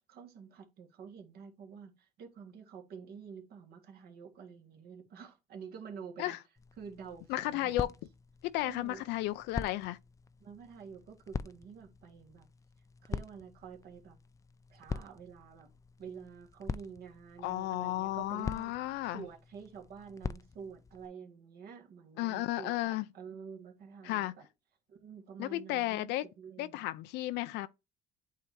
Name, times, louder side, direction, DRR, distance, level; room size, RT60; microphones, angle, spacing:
voice 1, 0.0-6.4 6.8-7.8 8.6-9.0 10.4-12.5 13.0-14.2 14.7-15.7 16.0-24.5 24.9-27.0, right 6 dB, 65° right, 1.8 m, -49 dB
sound 1, 6.6-21.1, left 5 dB, 20° left, 0.4 m, -44 dB
voice 2, 7.3-7.9 8.4-10.0 17.4-19.2 22.2-23.1 24.0-24.3 25.4-26.3 26.6-27.7, left 16 dB, 90° left, 0.4 m, -33 dB
8.3 x 2.8 x 4.6 m
cardioid pair, 110°, 17 cm